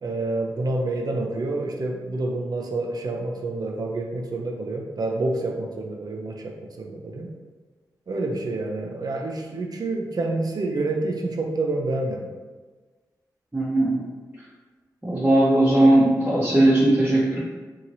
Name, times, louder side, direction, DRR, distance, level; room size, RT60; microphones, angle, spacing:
voice 1, 0.0-7.3 8.1-12.3, right 2 dB, 55° right, 1 dB, 0.5 m, -28 dB
voice 2, 13.5-14.0 15.0-17.4, right 1 dB, 20° right, -10 dB, 0.9 m, -18 dB
2.8 x 2.8 x 2.6 m, 1.3 s
supercardioid pair, 40°, 8 cm